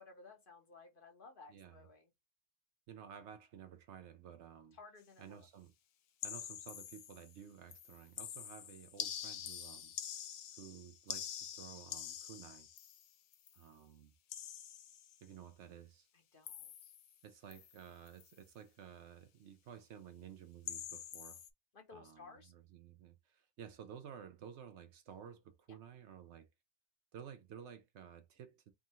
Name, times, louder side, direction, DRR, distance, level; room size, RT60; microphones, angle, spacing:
voice 1, 0.0-2.1 4.7-5.5 16.3-16.9 21.7-22.5, left 4 dB, 45° left, 1.0 m, -57 dB
voice 2, 1.5-1.9 2.9-4.8 5.2-5.7 6.2-9.9 10.6-12.7 13.5-14.1 15.2-16.1 17.2-21.4 21.9-26.5 27.1-28.7, right 8 dB, 65° right, 0.8 m, -53 dB
sound 1, 6.2-7.4 7.7-13.6 14.3-15.2 16.5-17.2 17.5-17.8 18.1-18.3 20.7-21.5, left 10 dB, 80° left, 1.0 m, -46 dB
3.6 x 2.4 x 4.1 m
omnidirectional pair, 1.3 m